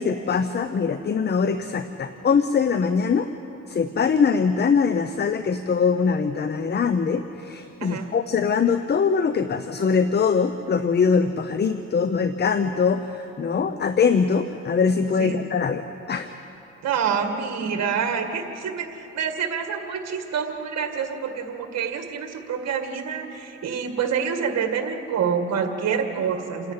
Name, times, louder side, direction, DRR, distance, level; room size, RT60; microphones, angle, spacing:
voice 1, 0.0-3.3 3.7-16.3, left 5 dB, 35° left, 10 dB, 0.8 m, -22 dB
voice 2, 7.8-8.1 15.2-15.4 16.8-26.7, right 6 dB, 60° right, 5 dB, 2.0 m, -27 dB
28.0 x 10.5 x 8.8 m, 3.0 s
cardioid pair, 90°, 30 cm